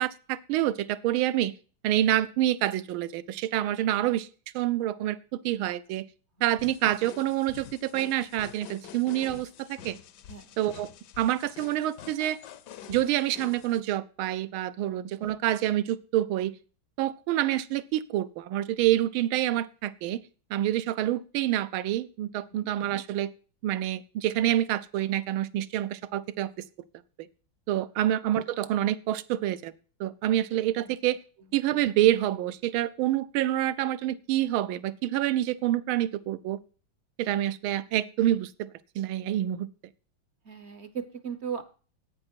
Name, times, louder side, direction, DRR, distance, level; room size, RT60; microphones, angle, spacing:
voice 1, 0.0-1.5 1.8-4.3 4.5-6.1 6.4-10.0 10.6-10.9 11.2-12.4 12.9-16.5 17.0-20.2 20.5-23.3 23.6-26.5 27.2-27.3 27.7-29.7 30.0-31.2 31.5-36.6 37.2-38.7 39.0-39.7, right 13 dB, 80° right, 17 dB, 1.5 m, -27 dB
sound 1, 6.6-13.8, left 9 dB, 65° left, 1.2 m, -47 dB
voice 2, 40.4-41.6, right 7 dB, 50° right, 12 dB, 0.8 m, -37 dB
11.0 x 8.7 x 4.4 m, 0.38 s
omnidirectional pair, 2.3 m